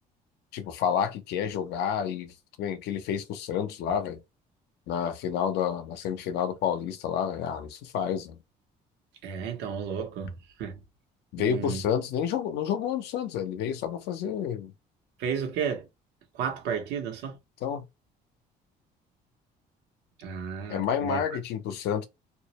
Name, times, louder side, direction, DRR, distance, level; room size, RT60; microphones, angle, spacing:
voice 1, 0.5-4.2 4.9-8.4 11.3-14.7 17.6-17.8 20.7-22.1, left 8 dB, 80° left, 0.6 m, -29 dB
voice 2, 9.2-10.8 11.4-11.8 15.2-15.9 16.3-17.4 20.2-21.2, right 7 dB, 90° right, 0.9 m, -33 dB
2.4 x 2.0 x 2.9 m
cardioid pair, 110°, 17 cm